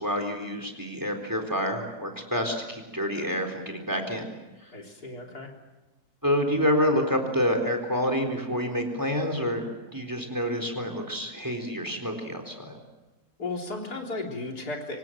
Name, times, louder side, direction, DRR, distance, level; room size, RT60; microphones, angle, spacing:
voice 1, 0.0-4.3 6.2-9.7 9.9-12.8, equal, 10° right, 6 dB, 4.0 m, -28 dB
voice 2, 4.7-5.5 13.4-15.0, left 2 dB, 80° left, 1 dB, 4.3 m, -35 dB
26.0 x 25.5 x 7.7 m, 1.1 s
omnidirectional pair, 1.6 m